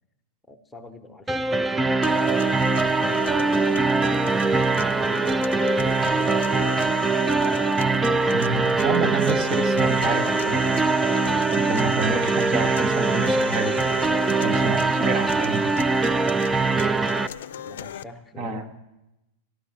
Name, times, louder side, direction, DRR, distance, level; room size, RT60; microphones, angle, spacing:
voice 1, 0.5-2.5 3.3-6.6 14.3-15.6 16.0-18.8, left 2 dB, 10° left, 4 dB, 1.1 m, -45 dB
sound 1, 1.3-17.3, right 3 dB, 10° right, 0.4 m, -22 dB
sound 2, 2.0-18.0, left 10 dB, 75° left, 0.4 m, -37 dB
voice 2, 8.3-10.8 11.6-13.8 14.4-15.7 18.4-18.6, right 4 dB, 40° right, 5 dB, 1.2 m, -29 dB
13.0 x 12.0 x 5.8 m, 0.95 s
hypercardioid pair, 110°, 0 cm